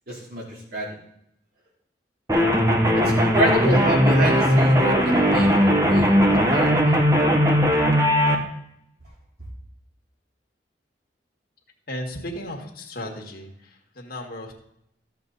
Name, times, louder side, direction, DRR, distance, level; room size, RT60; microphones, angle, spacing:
voice 1, 0.1-0.9 3.2-7.0, right 1 dB, 60° right, -3 dB, 3.3 m, -27 dB
sound 1, 2.3-8.4, equal, 20° right, 1.3 m, -18 dB
voice 2, 11.9-14.5, left 1 dB, 55° left, 1 dB, 1.8 m, -35 dB
14.0 x 7.1 x 4.0 m, 0.75 s
head